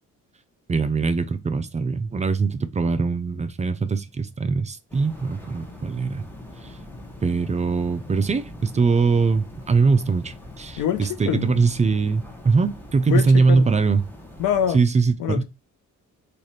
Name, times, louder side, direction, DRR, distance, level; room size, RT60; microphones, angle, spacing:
voice 1, 0.7-6.2 6.6-6.7 7.2-14.0 14.7-15.4, right 4 dB, 25° right, 0.4 m, -22 dB
sound 1, 4.9-14.7, left 1 dB, 5° left, 0.8 m, -42 dB
voice 2, 10.8-11.6 13.1-13.7 14.4-14.8 15.2-15.4, left 9 dB, 85° left, 0.7 m, -25 dB
3.2 x 2.5 x 4.1 m
cardioid pair, 90°, 30 cm